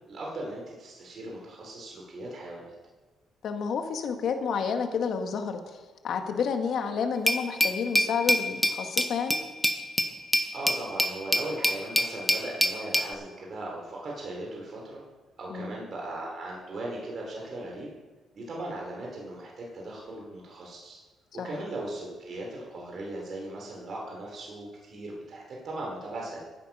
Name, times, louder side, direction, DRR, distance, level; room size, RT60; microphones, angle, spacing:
voice 1, 0.1-2.7 10.5-15.0 15.4-17.9 18.3-21.0 21.3-26.4, right 2 dB, 55° right, -2 dB, 3.7 m, -38 dB
voice 2, 3.4-5.8 6.0-9.4 15.5-15.7 21.4-21.6, left 6 dB, 65° left, 6 dB, 1.7 m, -30 dB
Glass, 7.3-13.1, equal, 5° left, 1.1 m, -26 dB
15.0 x 9.1 x 5.5 m, 1.3 s
cardioid pair, 90°, 0 cm